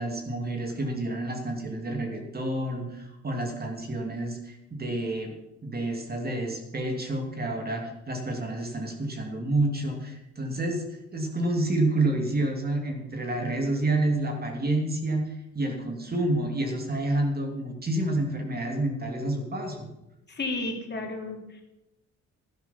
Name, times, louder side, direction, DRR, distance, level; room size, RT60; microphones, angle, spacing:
voice 1, 0.0-10.9 11.1-19.9, right 2 dB, 30° right, 3 dB, 2.7 m, -29 dB
voice 2, 20.3-21.6, left 2 dB, 35° left, 1 dB, 3.1 m, -33 dB
12.5 x 10.5 x 5.9 m, 0.91 s
cardioid pair, 90°, 30 cm